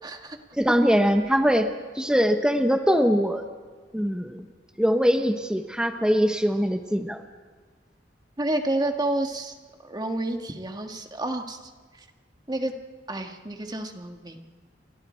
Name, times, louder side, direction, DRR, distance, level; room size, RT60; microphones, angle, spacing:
voice 1, 0.0-0.4 8.4-9.5 9.8-11.7 12.0-12.1 12.5-12.7 13.1-14.5, right 1 dB, 25° right, 4 dB, 1.7 m, -29 dB
voice 2, 0.5-3.4 3.9-4.4 4.8-7.2, equal, 5° right, 6 dB, 1.0 m, -22 dB
29.5 x 24.5 x 4.5 m, 1.5 s
head